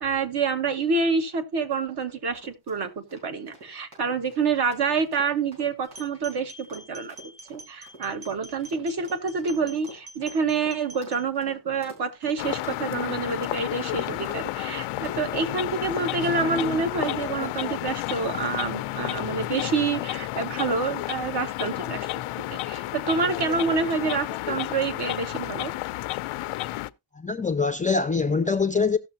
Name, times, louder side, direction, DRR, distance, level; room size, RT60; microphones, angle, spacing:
voice 1, 0.0-7.1 7.5-22.1 22.5-25.7, right 4 dB, 50° right, 1.3 m, -27 dB
sound 1, 2.3-17.2 17.6-17.8 18.3-18.6 19.0-19.3, right 1 dB, 90° right, 5.2 m, -47 dB
sound 2, 5.9-11.2, right 1 dB, 35° right, 4.1 m, -46 dB
sound 3, 12.4-26.9, left 16 dB, 85° left, 0.6 m, -31 dB
voice 2, 27.1-29.0, left 4 dB, 15° left, 0.4 m, -24 dB
16.5 x 6.2 x 2.7 m
cardioid pair, 130°, 49 cm